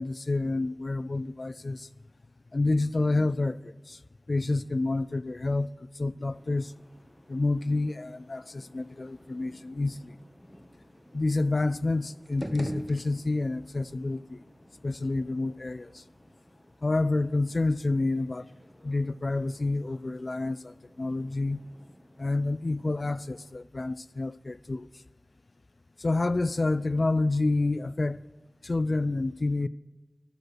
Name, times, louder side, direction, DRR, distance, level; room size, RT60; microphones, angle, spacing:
voice 1, 0.0-1.9 2.5-4.0 4.3-6.7 7.3-10.1 11.1-14.4 14.8-16.0 16.8-18.5 18.8-21.6 22.2-24.9 26.0-28.2 28.6-29.7, left 2 dB, 60° left, 0.3 m, -28 dB
sound 1, 6.3-23.6, equal, 25° left, 1.9 m, -57 dB
sound 2, 12.2-13.7, right 1 dB, 15° right, 0.8 m, -38 dB
13.0 x 6.7 x 6.3 m
wide cardioid pair, 40°, 0 cm